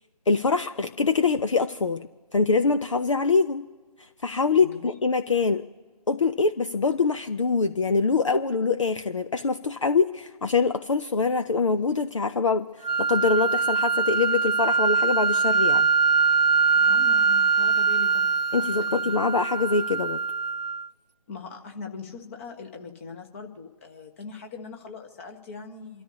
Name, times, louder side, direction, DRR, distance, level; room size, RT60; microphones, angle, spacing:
voice 1, 0.3-2.0 2.3-3.7 4.2-5.6 6.1-12.7 13.0-15.9 18.5-20.2, left 4 dB, 50° left, 9 dB, 0.7 m, -24 dB
sound 1, 12.8-20.9, right 5 dB, 90° right, 0.6 m, -23 dB
voice 2, 16.7-18.3 18.6-19.1 21.3-26.0, left 4 dB, 20° left, 4 dB, 1.4 m, -41 dB
28.5 x 13.5 x 2.8 m, 1.4 s
figure-of-eight pair, 155°, 20 cm